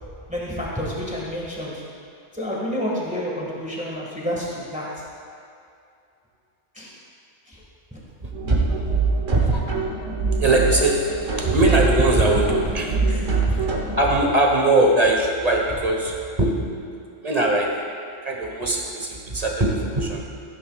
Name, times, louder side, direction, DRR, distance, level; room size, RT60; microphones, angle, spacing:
voice 1, 0.3-1.8 2.3-4.9 6.7-7.0 7.5-7.6 7.9-8.0 13.1-13.3, equal, 5° right, -5 dB, 1.7 m, -29 dB
voice 2, 8.2-8.7 9.3-9.7 10.4-13.7 14.0-16.8 17.2-17.8 18.2-20.3, right 2 dB, 30° right, 0 dB, 1.3 m, -21 dB
sound 1, 8.3-14.0, right 4 dB, 75° right, 1.6 m, -24 dB
15.5 x 9.5 x 2.4 m, 2.4 s
omnidirectional pair, 1.3 m